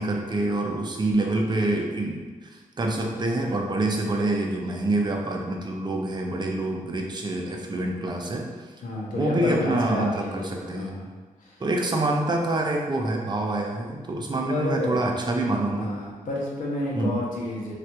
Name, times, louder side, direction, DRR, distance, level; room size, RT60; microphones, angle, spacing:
voice 1, 0.0-2.5 2.8-8.5 9.1-11.0 11.6-15.9 16.9-17.2, right 2 dB, 30° right, 1 dB, 0.5 m, -26 dB
voice 2, 8.8-11.1 14.5-15.0 15.7-17.7, left 1 dB, 80° left, -3 dB, 0.8 m, -30 dB
3.3 x 2.4 x 2.8 m, 1.4 s
cardioid pair, 65°, 14 cm